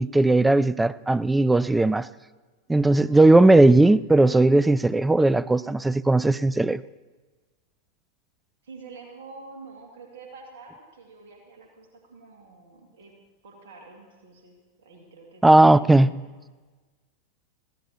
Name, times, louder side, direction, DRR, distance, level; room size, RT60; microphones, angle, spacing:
voice 1, 0.0-2.1 2.7-6.8 15.4-16.1, right 2 dB, 5° right, 0.4 m, -17 dB
voice 2, 8.6-13.1 13.4-16.3, right 4 dB, 60° right, 2.4 m, -47 dB
21.0 x 15.5 x 3.0 m
figure-of-eight pair, 90°, 0 cm